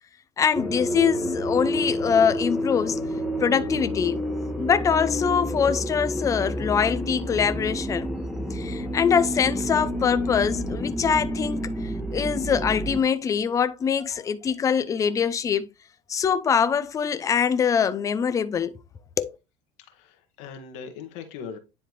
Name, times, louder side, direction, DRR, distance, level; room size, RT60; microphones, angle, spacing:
voice 1, 0.4-3.0 3.4-4.2 4.6-8.1 8.5-15.7 16.1-18.8 19.2-19.4, left 7 dB, 20° left, 0.5 m, -24 dB
sound 1, 0.5-13.0, equal, ahead, 1.2 m, -29 dB
voice 2, 19.8-21.6, left 6 dB, 75° left, 1.4 m, -40 dB
9.9 x 3.5 x 3.0 m
cardioid pair, 145°, 15 cm